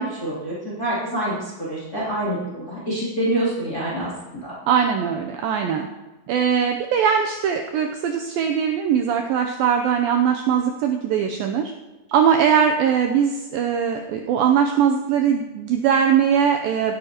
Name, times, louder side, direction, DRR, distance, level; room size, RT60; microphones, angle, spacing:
voice 1, 0.0-4.1 4.4-4.5, right 1 dB, 25° left, -7 dB, 2.9 m, -26 dB
voice 2, 4.7-5.9 6.3-11.7 12.1-16.9, right 8 dB, 80° right, 4 dB, 2.0 m, -20 dB
16.5 x 11.0 x 2.9 m, 1.1 s
omnidirectional pair, 4.8 m